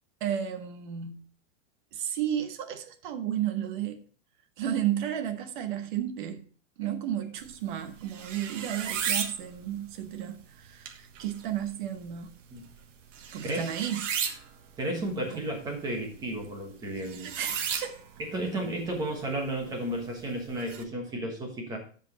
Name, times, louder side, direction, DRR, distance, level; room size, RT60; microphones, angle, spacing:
voice 1, 0.2-1.2 1.9-4.0 4.6-6.4 6.8-12.3 13.3-14.0 15.3-15.4 17.2-18.0, right 10 dB, 40° right, 1.1 m, -33 dB
sound 1, 7.4-20.8, right 7 dB, 70° right, 1.4 m, -38 dB
voice 2, 14.8-17.3 18.2-21.8, right 1 dB, 10° right, 1.2 m, -33 dB
13.0 x 5.2 x 4.0 m
supercardioid pair, 180°, 39 cm